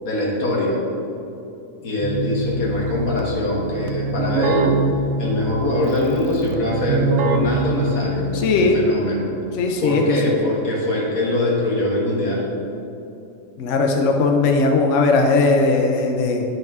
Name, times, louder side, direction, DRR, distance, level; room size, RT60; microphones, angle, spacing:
voice 1, 0.0-0.8 1.8-4.7 5.2-8.3 8.6-9.3 9.8-12.5, left 1 dB, 90° left, -4 dB, 1.9 m, -22 dB
Keyboard (musical), 2.0-8.9, right 3 dB, 80° right, 1.0 m, -24 dB
voice 2, 8.3-8.8 9.5-10.4 13.6-16.4, left 3 dB, 65° left, 2 dB, 0.9 m, -18 dB
10.5 x 5.4 x 3.6 m, 2.8 s
omnidirectional pair, 1.4 m